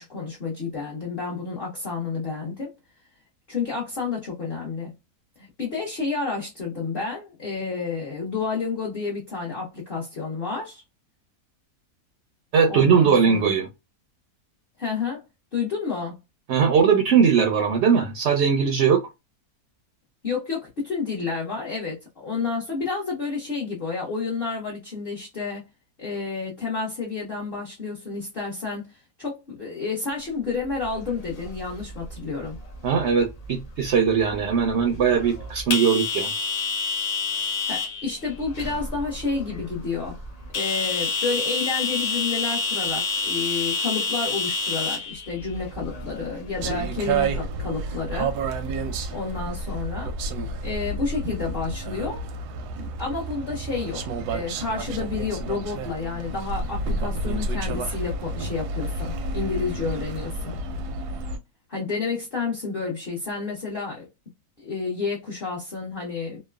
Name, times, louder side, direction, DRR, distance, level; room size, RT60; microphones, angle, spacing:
voice 1, 0.0-2.7 3.5-4.9 5.4-10.8 12.7-13.5 14.8-15.2 15.5-16.2 20.2-25.6 26.0-28.9 29.2-32.6 37.7-40.2 40.5-48.3 49.1-50.1 50.6-52.3 52.8-60.6 61.7-64.1 64.6-66.4, left 4 dB, 45° left, 0.9 m, -30 dB
voice 2, 12.5-13.7 16.5-19.0 32.8-36.3, right 6 dB, 65° right, 0.7 m, -20 dB
sound 1, 30.7-46.8, left 4 dB, 80° left, 0.3 m, -30 dB
sound 2, 46.6-61.4, right 3 dB, 85° right, 1.1 m, -30 dB
3.1 x 2.1 x 2.2 m
omnidirectional pair, 1.6 m